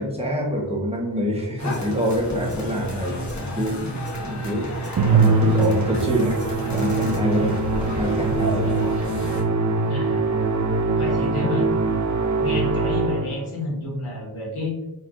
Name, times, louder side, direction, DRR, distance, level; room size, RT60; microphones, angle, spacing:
voice 1, 0.0-3.9 4.2-4.7 5.1-6.4 6.7-8.7, equal, 10° right, -2 dB, 1.1 m, -26 dB
sound 1, 1.6-9.4, equal, 35° left, 1.1 m, -31 dB
Musical instrument, 5.0-13.5, right 3 dB, 40° right, 0.5 m, -22 dB
voice 2, 9.9-10.3 11.0-11.7 12.4-14.7, left 2 dB, 80° left, -3 dB, 1.4 m, -30 dB
4.2 x 3.3 x 2.5 m, 0.96 s
wide cardioid pair, 60°, 49 cm